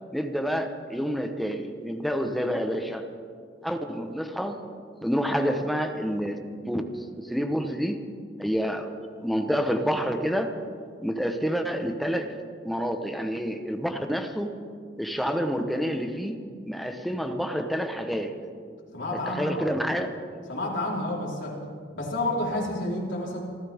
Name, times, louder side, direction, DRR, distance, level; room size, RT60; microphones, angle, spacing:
voice 1, 0.1-3.1 3.6-4.6 5.0-6.4 6.6-8.0 8.4-10.6 11.0-12.3 12.6-14.6 15.0-18.3 19.1-20.1, equal, ahead, 5 dB, 1.0 m, -28 dB
voice 2, 18.9-19.6 20.5-21.6 22.0-23.4, left 1 dB, 85° left, -4 dB, 4.1 m, -29 dB
26.5 x 14.0 x 3.6 m, 2.1 s
head